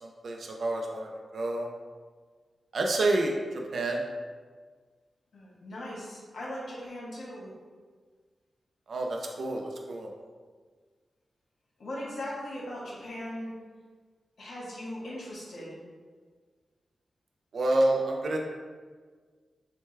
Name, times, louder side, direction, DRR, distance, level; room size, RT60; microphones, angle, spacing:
voice 1, 0.0-1.7 2.7-4.0 8.9-10.1 17.5-18.4, right 2 dB, 65° right, 1 dB, 0.4 m, -28 dB
voice 2, 5.3-7.5 11.8-13.5 14.4-15.8, left 1 dB, 80° left, -6 dB, 1.4 m, -39 dB
6.6 x 2.2 x 3.2 m, 1.5 s
wide cardioid pair, 120°, 0 cm